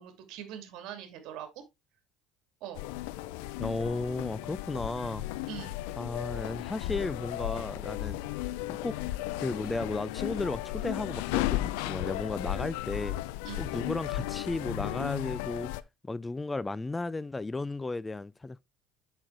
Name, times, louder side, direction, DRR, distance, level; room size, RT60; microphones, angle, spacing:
voice 1, 0.0-1.5 2.6-2.9 5.5-5.8 13.4-13.7, right 10 dB, 70° right, 2.5 m, -42 dB
sound 1, 2.7-15.8, left 16 dB, 90° left, 0.5 m, -35 dB
voice 2, 3.6-5.2 6.0-8.2 8.7-9.0 9.4-13.2 13.6-15.7 16.0-18.6, left 3 dB, 15° left, 0.3 m, -34 dB
7.7 x 6.2 x 3.3 m
supercardioid pair, 100°, 0 cm